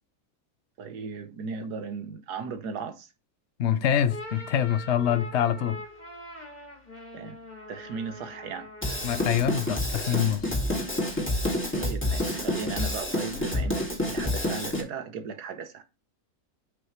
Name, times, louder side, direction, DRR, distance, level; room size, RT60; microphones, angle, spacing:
voice 1, 0.8-3.1 7.1-7.4 7.7-8.7 11.7-15.8, right 5 dB, 85° right, 1.5 m, -36 dB
voice 2, 3.6-5.8 9.0-10.6, left 9 dB, 55° left, 0.9 m, -25 dB
sound 1, 4.1-10.0, left 1 dB, 25° left, 2.6 m, -43 dB
Drum kit / Drum, 8.8-14.8, left 1 dB, 5° left, 2.4 m, -28 dB
8.1 x 5.7 x 3.2 m
omnidirectional pair, 1.7 m